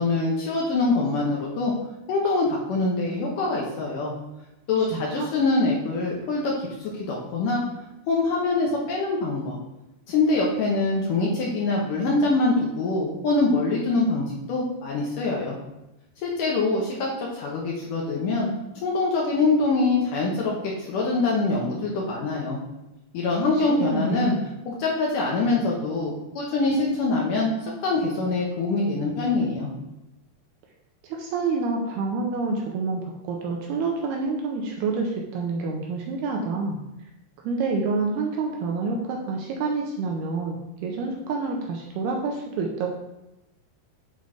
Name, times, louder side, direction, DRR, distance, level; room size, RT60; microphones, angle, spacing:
voice 1, 0.0-1.7 2.1-4.1 4.7-7.6 8.1-9.6 10.1-15.6 16.2-18.5 18.8-22.6 23.1-24.3 24.7-29.7, left 3 dB, 75° left, -3 dB, 1.9 m, -24 dB
voice 2, 4.8-5.3 23.7-24.4 31.0-36.8 37.4-42.9, right 4 dB, 80° right, 0 dB, 2.5 m, -28 dB
8.1 x 4.0 x 4.9 m, 0.93 s
omnidirectional pair, 5.2 m